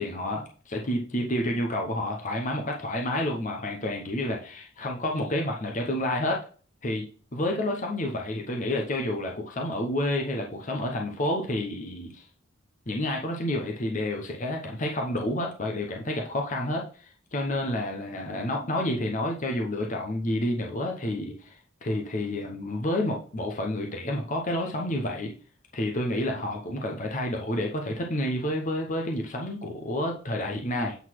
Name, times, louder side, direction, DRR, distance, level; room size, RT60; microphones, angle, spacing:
voice 1, 0.0-6.4 6.8-7.1 7.3-12.2 12.9-16.8 17.3-25.3 25.7-31.0, left 1 dB, 40° left, 1 dB, 0.9 m, -29 dB
8.1 x 4.0 x 4.6 m, 0.40 s
head